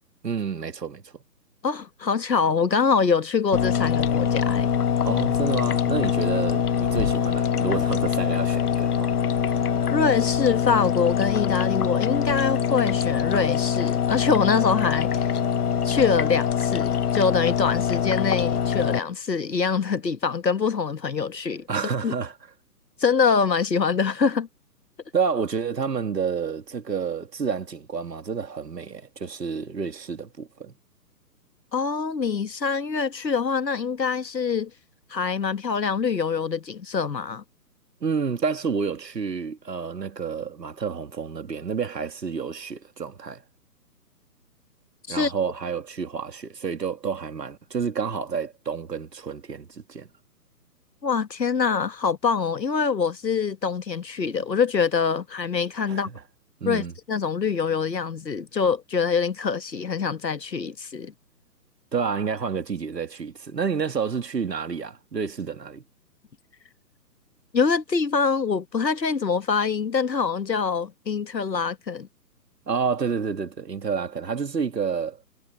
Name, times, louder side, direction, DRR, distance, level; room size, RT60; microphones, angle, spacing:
voice 1, 0.2-1.2 5.1-9.1 21.7-22.3 25.1-30.7 38.0-43.4 45.1-50.1 55.9-56.2 56.6-56.9 61.9-65.8 72.7-75.2, right 6 dB, 80° right, 2.2 m, -29 dB
voice 2, 1.6-4.7 9.9-15.3 15.8-21.7 22.0-22.1 23.0-24.5 31.7-34.7 35.1-37.4 45.1-45.3 51.0-56.1 56.6-61.1 67.5-72.1, left 5 dB, 90° left, 1.6 m, -24 dB
sound 1, 3.5-19.0, left 8 dB, 65° left, 1.0 m, -24 dB
figure-of-eight pair, 145°, 49 cm